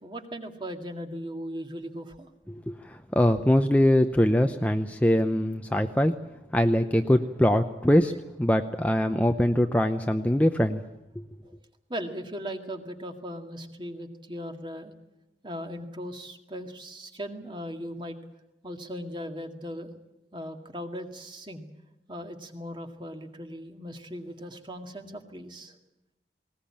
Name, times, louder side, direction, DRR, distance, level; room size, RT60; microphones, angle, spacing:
voice 1, 0.0-2.3 11.4-11.5 11.9-14.9 15.4-18.2 18.6-19.9 20.3-21.7 22.1-25.8, equal, 25° right, 5 dB, 2.1 m, -38 dB
voice 2, 2.5-6.1 6.5-8.1 8.4-10.8, left 1 dB, 10° left, 6 dB, 0.7 m, -23 dB
20.0 x 19.0 x 8.7 m, 0.97 s
head